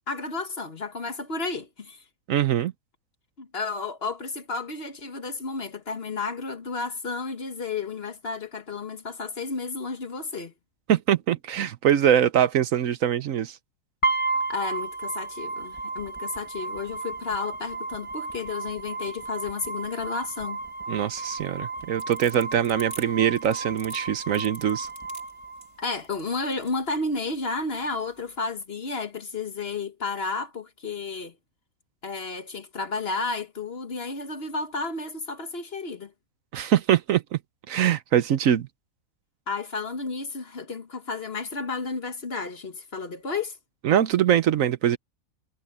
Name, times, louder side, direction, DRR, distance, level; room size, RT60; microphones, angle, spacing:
voice 1, 0.1-2.0 3.4-10.5 14.5-20.6 25.8-31.3 32.0-36.1 39.5-43.6, left 4 dB, 45° left, 1.7 m, -32 dB
voice 2, 2.3-2.7 10.9-13.6 20.9-24.9 36.5-37.4 37.7-38.7 43.8-45.0, right 10 dB, 70° right, 1.2 m, -23 dB
sound 1, 14.0-26.0, right 3 dB, 20° left, 1.6 m, -33 dB
sound 2, 21.8-26.8, right 2 dB, 50° right, 4.0 m, -45 dB
omnidirectional pair, 1.5 m